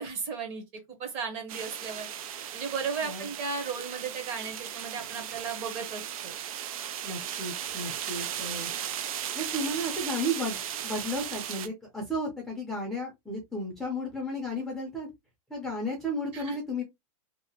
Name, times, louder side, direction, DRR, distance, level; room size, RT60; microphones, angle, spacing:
voice 1, 0.0-2.1 2.5-6.3 16.3-16.6, right 5 dB, 35° right, 0.9 m, -35 dB
sound 1, 1.5-11.7, right 10 dB, 75° right, 0.5 m, -36 dB
voice 2, 7.0-8.7 9.3-15.1 15.5-16.8, equal, ahead, 0.5 m, -33 dB
2.8 x 2.0 x 2.8 m
supercardioid pair, 160°, 18 cm